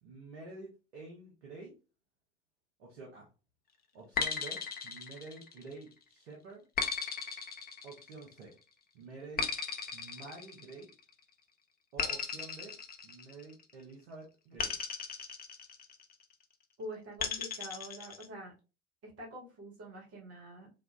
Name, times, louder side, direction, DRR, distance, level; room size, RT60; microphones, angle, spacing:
voice 1, 0.0-1.8 2.8-3.3 3.9-6.7 7.8-8.6 8.9-9.5 9.9-10.9 11.9-12.8 13.0-14.8, right 3 dB, 80° right, -2 dB, 0.9 m, -49 dB
sound 1, 4.2-5.8 6.8-8.4 9.4-11.1 12.0-13.7 14.6-16.1 17.2-18.3, left 5 dB, 30° left, 0.7 m, -36 dB
voice 2, 16.8-18.5 19.0-20.7, equal, 45° right, -2 dB, 1.8 m, -46 dB
4.6 x 2.3 x 2.3 m, 0.32 s
figure-of-eight pair, 60°, 33 cm